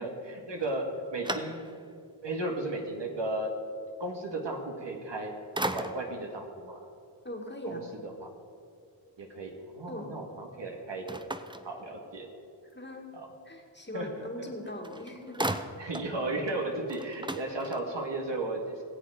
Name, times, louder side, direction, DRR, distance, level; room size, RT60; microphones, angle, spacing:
voice 1, 0.0-1.6 2.2-3.5 4.0-5.3 5.7-6.8 7.6-7.8 8.0-8.3 9.2-11.2 11.6-12.3 13.1-13.3 13.9-14.3 15.8-18.8, right 2 dB, 65° right, 1 dB, 2.2 m, -35 dB
sound 1, 0.6-2.0 2.6-2.7 4.9-5.2 5.5-6.3 11.1-12.3 14.4-14.5 14.8-16.2 16.5-16.6 16.8-18.1, right 1 dB, 10° right, 0.8 m, -37 dB
voice 2, 7.2-8.0 9.9-10.3 12.7-13.1 13.5-15.5, left 1 dB, 25° left, 1 dB, 2.3 m, -40 dB
20.0 x 7.7 x 5.1 m, 2.4 s
cardioid pair, 45°, 46 cm